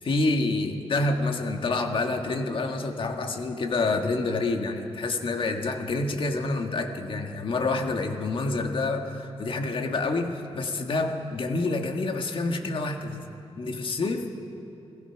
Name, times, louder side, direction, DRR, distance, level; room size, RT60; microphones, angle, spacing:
voice 1, 0.0-13.2 13.6-14.3, left 3 dB, 50° left, 4 dB, 1.6 m, -28 dB
29.0 x 18.5 x 5.9 m, 2.8 s
wide cardioid pair, 170°, 11 cm